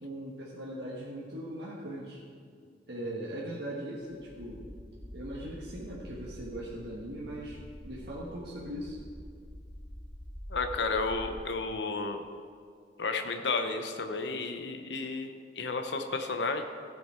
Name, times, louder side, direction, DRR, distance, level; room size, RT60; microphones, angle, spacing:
voice 1, 0.0-2.2 2.9-4.7 5.1-7.6 7.8-9.0, right 1 dB, 65° right, -5 dB, 1.4 m, -39 dB
sound 1, 4.2-11.3, equal, 5° left, 1.3 m, -46 dB
voice 2, 10.5-12.2 13.0-16.6, left 3 dB, 70° left, 6 dB, 0.8 m, -32 dB
15.0 x 7.2 x 4.4 m, 2.1 s
head